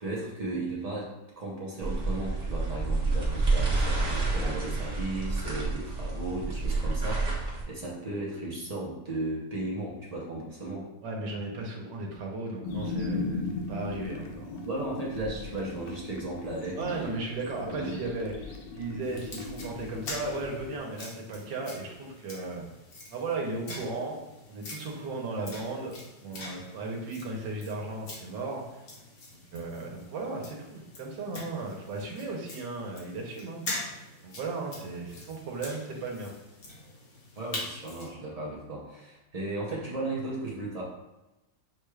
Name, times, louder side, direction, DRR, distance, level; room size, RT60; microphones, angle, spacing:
voice 1, 0.0-10.9 14.7-17.1 17.7-18.0 37.4-40.8, right 2 dB, 50° right, -4 dB, 0.4 m, -35 dB
sound 1, 1.8-7.6, right 3 dB, 35° right, 0.9 m, -29 dB
voice 2, 11.0-14.6 16.8-22.6 23.1-24.2 24.5-25.9 26.2-28.8 29.5-33.6 34.2-36.3, right 3 dB, 85° right, -1 dB, 1.4 m, -36 dB
sound 2, 12.6-20.8, left 3 dB, 80° left, 1.3 m, -37 dB
sound 3, 19.0-38.1, left 2 dB, 60° left, 1.5 m, -44 dB
6.8 x 2.3 x 3.2 m, 0.99 s
omnidirectional pair, 1.9 m